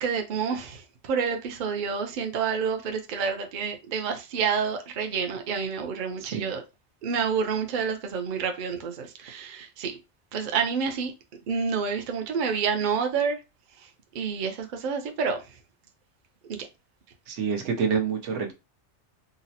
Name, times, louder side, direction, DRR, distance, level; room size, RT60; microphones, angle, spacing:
voice 1, 0.0-6.6 7.0-10.0 10.3-11.1 11.5-13.4 13.8-15.6 16.5-16.7, right 6 dB, 55° right, 0.6 m, -29 dB
voice 2, 17.3-18.5, right 6 dB, 85° right, 1.1 m, -27 dB
3.8 x 2.0 x 2.7 m
omnidirectional pair, 1.2 m